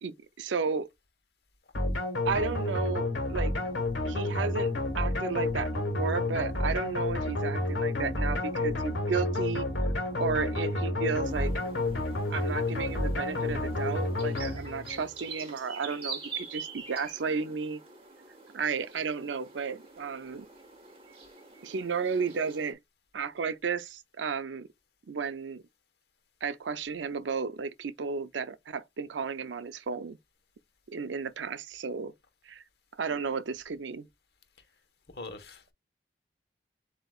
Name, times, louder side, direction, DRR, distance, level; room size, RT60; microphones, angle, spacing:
voice 1, 0.0-0.9 2.2-3.5 4.0-9.7 10.1-11.5 12.3-17.8 18.5-20.5 21.6-22.8 23.1-24.7 25.1-25.6 26.4-30.2 30.9-32.1 32.5-32.6 33.0-34.1, right 5 dB, 90° right, 0.5 m, -33 dB
sound 1, 1.7-15.1, left 2 dB, 90° left, 1.4 m, -30 dB
sound 2, 11.2-22.7, right 5 dB, 30° right, 1.4 m, -45 dB
voice 2, 35.1-35.7, left 2 dB, 60° left, 1.2 m, -43 dB
7.8 x 2.8 x 2.4 m
head